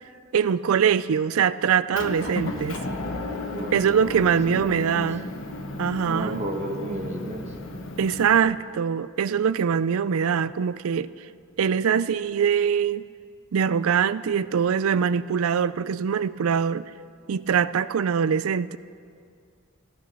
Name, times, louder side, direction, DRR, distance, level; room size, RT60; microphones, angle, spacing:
voice 1, 0.3-2.8 3.7-5.2 5.8-6.4 8.0-11.1 11.6-13.1 13.5-16.8 17.3-18.8, right 7 dB, 75° right, 16 dB, 0.4 m, -23 dB
Motor vehicle (road) / Engine, 1.9-8.4, left 2 dB, 60° left, 1.2 m, -34 dB
voice 2, 3.5-5.0 6.0-7.5, right 1 dB, 30° right, 1 dB, 1.5 m, -33 dB
14.0 x 12.5 x 6.1 m, 2.3 s
head